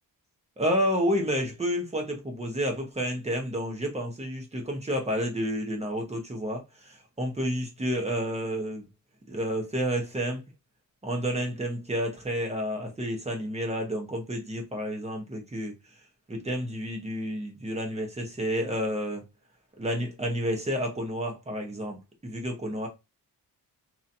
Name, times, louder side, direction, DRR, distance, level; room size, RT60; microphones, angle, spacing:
voice 1, 0.6-8.9 9.3-10.4 11.0-15.7 16.3-19.2 19.7-22.9, equal, 20° right, 1.0 m, -30 dB
3.0 x 2.7 x 2.6 m
wide cardioid pair, 125°, 36 cm